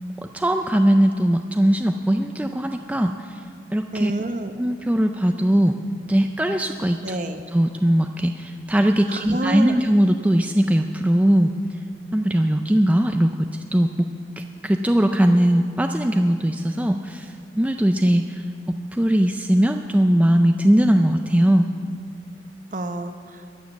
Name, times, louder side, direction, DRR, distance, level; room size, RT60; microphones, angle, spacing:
voice 1, 0.2-3.4 3.7-4.1 4.6-5.7 6.1-7.2 7.5-11.5 12.1-13.9 14.4-18.4 18.9-21.7, equal, 10° right, 5 dB, 0.4 m, -20 dB
voice 2, 3.9-4.5 7.0-7.4 9.1-9.8 22.7-23.4, right 1 dB, 45° right, 8 dB, 0.9 m, -28 dB
21.5 x 7.4 x 7.2 m, 2.2 s
head